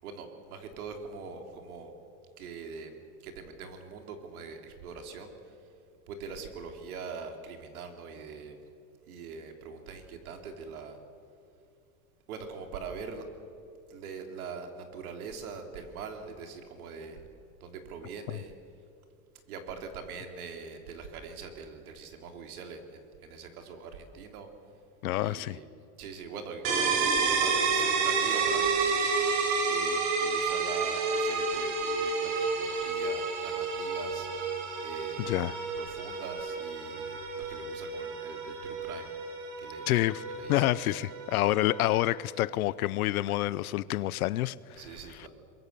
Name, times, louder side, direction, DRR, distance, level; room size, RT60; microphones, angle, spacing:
voice 1, 0.0-1.9 2.4-3.0 3.2-5.3 6.1-8.6 9.1-11.0 12.3-13.3 13.9-17.2 17.6-18.5 19.5-24.5 25.2-25.7 26.0-29.0 29.7-34.3 34.8-35.3 35.8-39.1 39.6-39.9 40.3-40.7 44.8-45.3, right 5 dB, 85° right, 3.6 m, -42 dB
voice 2, 25.0-25.6 35.2-35.6 39.9-40.2 40.5-44.8 45.1-45.3, left 16 dB, 90° left, 0.8 m, -28 dB
sound 1, 26.7-42.2, right 4 dB, 60° right, 4.3 m, -30 dB
24.0 x 22.0 x 7.0 m
supercardioid pair, 165°, 43 cm